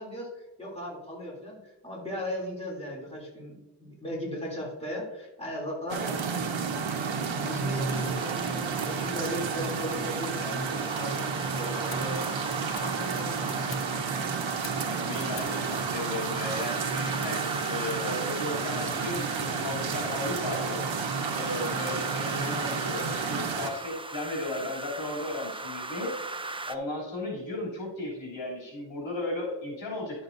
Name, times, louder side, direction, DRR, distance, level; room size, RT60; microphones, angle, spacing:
voice 1, 0.0-6.2 7.0-13.8, equal, 15° left, -4 dB, 3.0 m, -37 dB
sound 1, 5.9-23.7, right 5 dB, 85° right, 0.9 m, -31 dB
sound 2, 7.9-26.7, right 2 dB, 10° right, 0.5 m, -39 dB
Fire, 11.8-21.9, left 6 dB, 55° left, 1.0 m, -51 dB
voice 2, 14.8-20.8 21.3-26.1 26.7-30.2, left 2 dB, 80° left, -4 dB, 3.2 m, -35 dB
11.5 x 7.2 x 2.7 m, 1.0 s
cardioid pair, 75°, 45 cm